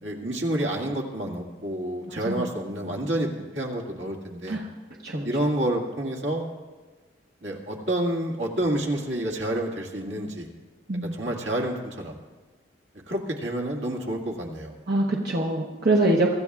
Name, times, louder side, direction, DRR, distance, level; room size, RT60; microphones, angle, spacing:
voice 1, 0.0-4.6 5.2-6.4 7.4-10.5 11.0-12.2 13.1-14.7, right 1 dB, 75° right, -1 dB, 2.1 m, -29 dB
voice 2, 10.9-11.3 14.9-16.3, right 2 dB, 55° right, -2 dB, 1.2 m, -24 dB
24.5 x 14.0 x 2.4 m, 1.3 s
head